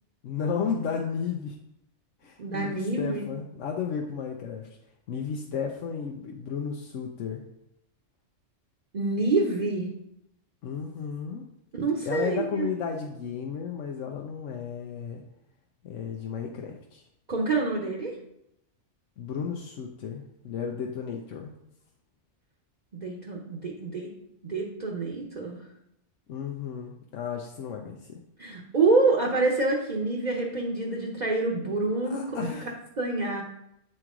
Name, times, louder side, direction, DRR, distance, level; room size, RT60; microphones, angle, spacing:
voice 1, 0.2-1.6 2.2-4.7 5.1-7.4 10.6-11.4 12.0-15.2 15.8-17.0 19.2-21.5 26.3-28.2 32.1-32.7, left 6 dB, 90° left, 1 dB, 1.0 m, -33 dB
voice 2, 2.4-3.2 8.9-9.9 11.7-12.7 17.3-18.1 23.0-24.1 24.4-25.6 28.4-32.5 33.0-33.4, right 3 dB, 40° right, -2 dB, 0.9 m, -27 dB
7.7 x 4.6 x 3.7 m, 0.79 s
omnidirectional pair, 1.2 m